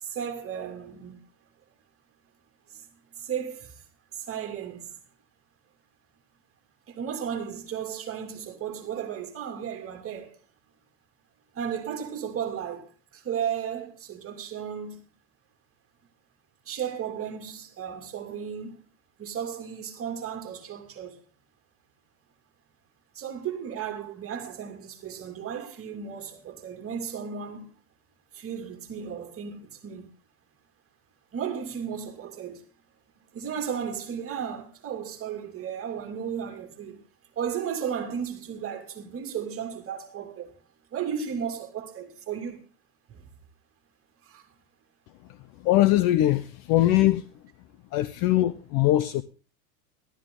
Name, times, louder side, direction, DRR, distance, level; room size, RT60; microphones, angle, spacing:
voice 1, 0.0-1.2 2.7-2.8 3.2-3.8 4.1-5.0 6.9-10.4 11.5-15.0 16.6-18.8 19.2-21.2 23.1-27.7 28.3-30.1 31.3-32.6 33.3-37.0 37.3-40.5 40.9-42.6 43.1-43.3 44.2-44.5, right 8 dB, 25° right, 2.7 m, -34 dB
voice 2, 45.6-47.3 47.9-49.2, left 14 dB, 40° left, 0.8 m, -21 dB
14.0 x 12.5 x 3.8 m
supercardioid pair, 125°, 49 cm